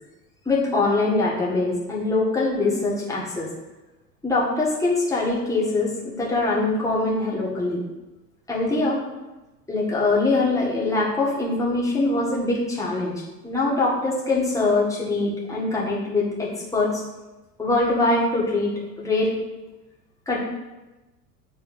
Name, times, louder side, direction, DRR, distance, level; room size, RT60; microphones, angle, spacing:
voice 1, 0.5-3.5 4.2-7.8 8.5-9.0 9.7-13.1 13.4-17.0 17.6-19.3 20.3-20.4, left 2 dB, 5° left, -5 dB, 1.7 m, -23 dB
7.7 x 3.9 x 4.1 m, 1.1 s
figure-of-eight pair, 80°, 49 cm